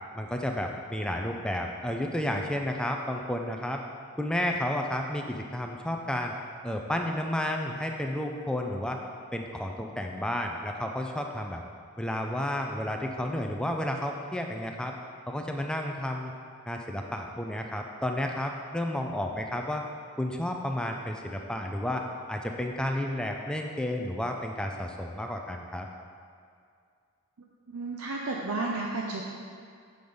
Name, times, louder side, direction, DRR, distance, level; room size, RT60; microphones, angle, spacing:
voice 1, 0.2-3.8 4.2-6.3 6.6-9.0 9.3-11.6 12.0-14.9 15.3-16.3 16.7-19.8 20.2-25.9, left 1 dB, 5° left, 2 dB, 0.4 m, -31 dB
voice 2, 27.7-29.2, right 3 dB, 75° right, -1 dB, 0.6 m, -32 dB
7.8 x 5.1 x 5.4 m, 2.3 s
head